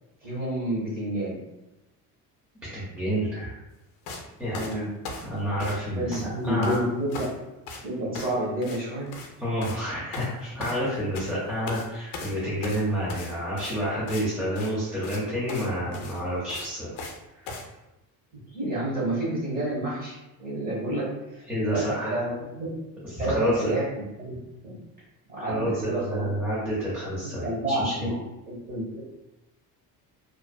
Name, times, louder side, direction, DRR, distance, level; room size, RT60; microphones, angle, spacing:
voice 1, 0.2-1.4 4.5-4.9 5.9-7.3 7.8-9.1 18.5-21.1 21.3-22.7 23.2-23.8 24.2-24.4 24.6-24.8 25.3-26.3 27.4-28.1 28.5-29.0, right 1 dB, 25° right, -6 dB, 0.9 m, -29 dB
voice 2, 2.7-3.5 4.4-4.8 5.2-6.2 6.4-6.8 9.4-16.9 21.5-22.2 23.0-23.7 25.4-28.1, equal, 5° right, -10 dB, 0.5 m, -29 dB
sound 1, 4.1-4.2 4.5-5.8 6.1-6.8 7.1-7.4 7.7-7.8 8.1-8.4 8.6-8.8 9.1-9.3 9.6-9.8 10.1-11.3 11.7-11.9 12.1-14.2 14.5-14.7 15.0-15.2 15.5-15.7 15.9-17.2 17.5-17.6, left 3 dB, 65° left, 0.5 m, -38 dB
2.5 x 2.2 x 2.3 m, 0.97 s
cardioid pair, 160°, 37 cm